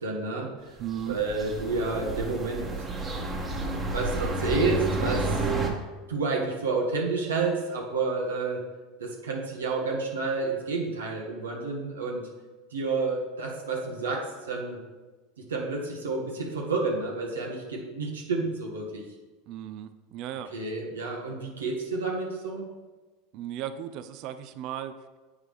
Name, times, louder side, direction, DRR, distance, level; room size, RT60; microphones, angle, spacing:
voice 1, 0.0-0.7 1.1-2.7 3.9-5.4 6.1-8.6 9.0-12.3 12.7-14.8 15.5-19.0 20.5-22.7, right 3 dB, 90° right, -1 dB, 1.0 m, -30 dB
sound 1, 0.8-5.7, right 2 dB, 25° right, 1.2 m, -30 dB
voice 2, 0.8-1.2 19.5-20.5 23.3-25.2, right 10 dB, 55° right, 11 dB, 0.4 m, -36 dB
7.4 x 4.8 x 3.4 m, 1.3 s
hypercardioid pair, 90°, 0 cm